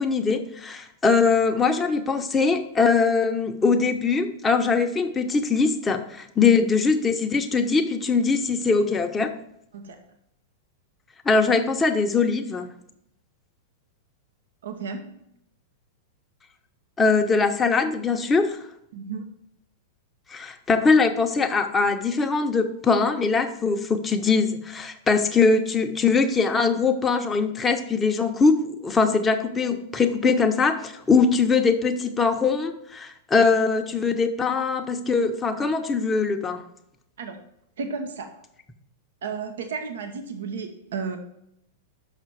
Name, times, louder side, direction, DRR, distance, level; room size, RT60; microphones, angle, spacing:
voice 1, 0.0-9.3 11.2-12.7 17.0-18.6 20.3-36.6, left 4 dB, 15° left, 5 dB, 0.8 m, -22 dB
voice 2, 14.6-15.2 18.9-19.2 37.2-37.4 37.8-38.4 39.2-41.2, right 5 dB, 70° right, 6 dB, 0.9 m, -33 dB
6.0 x 5.9 x 4.7 m, 0.77 s
hypercardioid pair, 100°, 0 cm